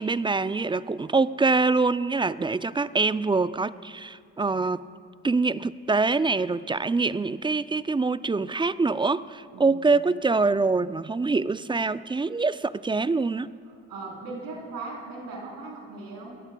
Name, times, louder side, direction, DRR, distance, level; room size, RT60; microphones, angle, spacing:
voice 1, 0.0-4.9 5.2-13.5, right 3 dB, 15° right, 0.3 m, -25 dB
voice 2, 9.5-9.9 13.9-16.4, right 3 dB, 75° right, 4.0 m, -38 dB
22.5 x 16.0 x 2.3 m
hypercardioid pair, 50°, 37 cm